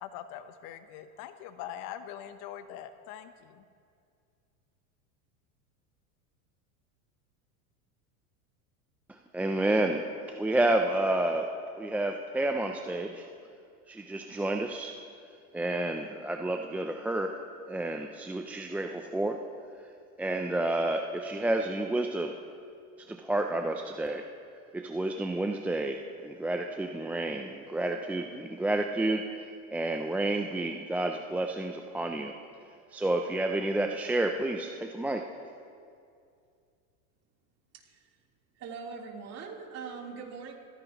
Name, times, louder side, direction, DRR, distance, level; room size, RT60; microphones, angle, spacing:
voice 1, 0.0-3.6, left 10 dB, 55° left, 10 dB, 1.0 m, -43 dB
voice 2, 9.1-13.3 13.9-15.0 15.5-17.4 17.7-19.4 20.2-22.4 23.0-24.3 24.7-32.3 32.9-35.3, right 2 dB, 5° right, 3 dB, 0.3 m, -30 dB
voice 3, 38.6-40.5, right 5 dB, 35° right, -1 dB, 3.4 m, -42 dB
26.5 x 16.0 x 3.0 m, 2.3 s
supercardioid pair, 115°, 42 cm